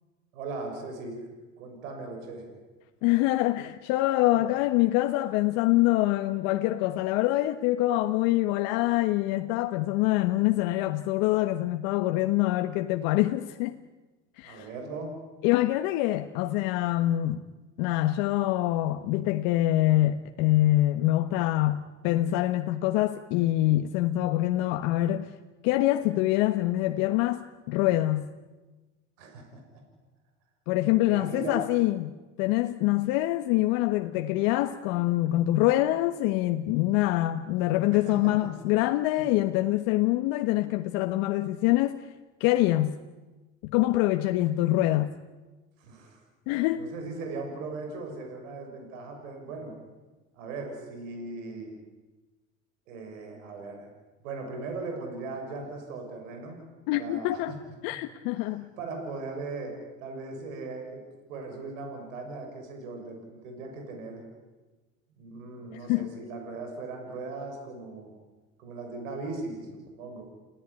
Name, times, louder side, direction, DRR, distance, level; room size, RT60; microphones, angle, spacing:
voice 1, 0.3-1.2 1.6-2.5 4.3-4.5 14.4-15.1 29.2-29.8 31.1-31.6 37.9-38.5 39.2-39.3 45.8-46.2 46.8-49.7 50.3-51.7 52.9-53.9 54.2-57.6 58.4-61.0 61.3-64.2 65.2-68.1 68.6-70.2, right 3 dB, 80° right, 6.7 m, -38 dB
voice 2, 3.0-13.7 14.4-14.7 15.4-17.4 17.8-25.3 25.6-28.3 30.7-32.1 32.4-42.0 42.4-43.0 43.6-45.1 46.5-46.9 56.9-57.5 57.8-58.7 65.7-66.1, left 16 dB, 65° left, 1.4 m, -25 dB
29.5 x 17.5 x 10.0 m
hypercardioid pair, 90°, 38 cm